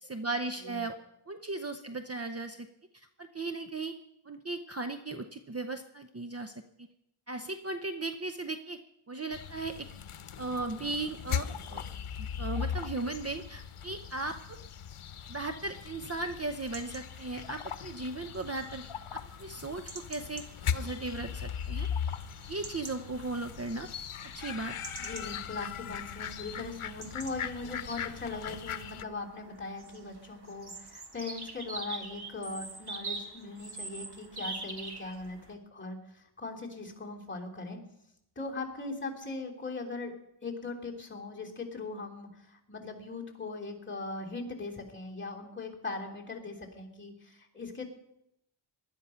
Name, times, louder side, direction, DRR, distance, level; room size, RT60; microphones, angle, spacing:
voice 1, 0.0-0.9 1.3-2.7 2.9-3.9 4.3-6.5 7.3-8.8 9.1-9.9 10.4-11.8 12.2-14.6 15.3-18.9 19.1-20.4 20.7-21.9 22.5-23.9 24.3-24.8, right 3 dB, 30° right, 8 dB, 0.8 m, -37 dB
sound 1, 9.3-29.0, left 8 dB, 80° left, 0.9 m, -39 dB
sound 2, 16.4-35.5, right 3 dB, 50° right, 1.9 m, -46 dB
voice 2, 25.0-37.8 38.3-40.1 40.4-47.8, left 3 dB, 20° left, -1 dB, 3.3 m, -40 dB
19.0 x 12.0 x 5.7 m, 0.81 s
wide cardioid pair, 110°, 50 cm